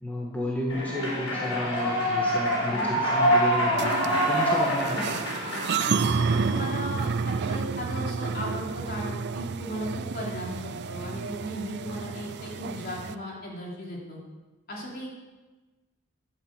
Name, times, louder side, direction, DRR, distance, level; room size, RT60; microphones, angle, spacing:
voice 1, 0.0-5.1, left 1 dB, 5° left, -3 dB, 1.8 m, -32 dB
Human voice / Clapping / Cheering, 0.7-6.7, equal, 70° left, 4.6 m, -26 dB
sound 1, 3.8-13.2, right 5 dB, 50° right, 0.5 m, -30 dB
voice 2, 6.3-14.2 14.7-15.1, equal, 45° left, -3 dB, 3.7 m, -36 dB
12.0 x 8.3 x 8.2 m, 1.2 s
head